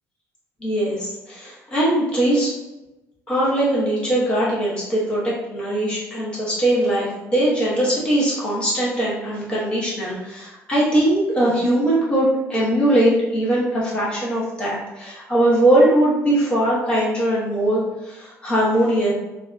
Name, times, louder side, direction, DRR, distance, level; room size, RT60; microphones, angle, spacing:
voice 1, 0.6-2.6 3.3-19.1, right 1 dB, 20° left, -7 dB, 0.9 m, -20 dB
2.6 x 2.4 x 2.2 m, 1.0 s
cardioid pair, 165°, 6 cm